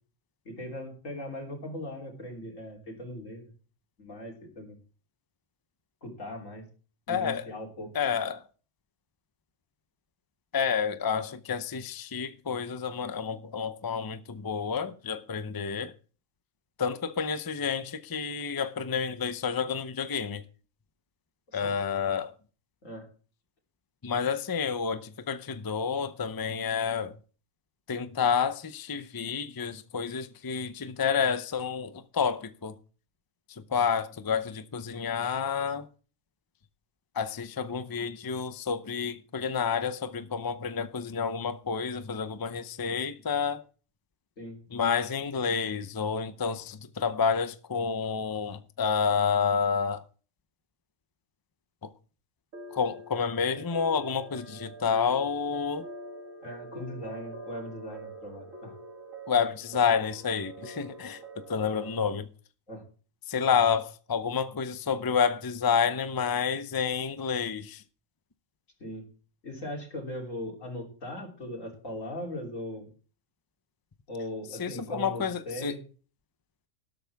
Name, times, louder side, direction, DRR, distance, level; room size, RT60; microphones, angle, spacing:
voice 1, 0.5-3.5 4.0-4.8 6.0-6.7 7.1-7.9 21.5-21.8 22.8-23.1 44.4-44.6 45.4-45.6 56.4-58.7 62.7-62.8 68.8-69.1 69.4-72.9 74.1-75.8, left 1 dB, 90° left, 3.8 m, -39 dB
voice 2, 7.1-7.5 7.9-8.4 10.5-15.9 16.8-20.4 21.5-22.3 24.0-27.1 27.9-32.7 33.5-35.9 37.1-43.6 44.7-50.0 51.8-51.9 52.7-55.9 59.3-62.3 63.3-67.8 74.6-75.8, left 6 dB, 25° left, 0.5 m, -29 dB
sound 1, 52.5-62.1, right 1 dB, 85° right, 2.3 m, -45 dB
12.5 x 12.0 x 3.5 m
omnidirectional pair, 1.3 m